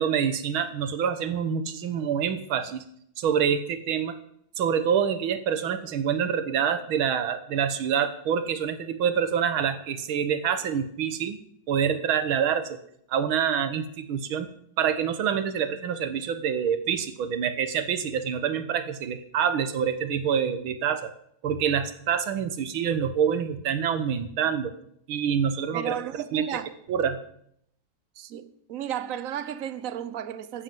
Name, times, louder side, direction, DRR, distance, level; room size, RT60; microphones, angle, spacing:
voice 1, 0.0-2.8 3.2-4.2 4.6-11.4 11.7-12.8 13.1-14.5 14.8-21.1 21.4-24.7 25.1-26.0 26.3-26.6 26.9-27.2, right 8 dB, 75° right, 2.0 m, -26 dB
voice 2, 25.7-26.7 28.2-30.6, right 10 dB, 55° right, 0.9 m, -34 dB
14.5 x 8.8 x 7.7 m
omnidirectional pair, 2.3 m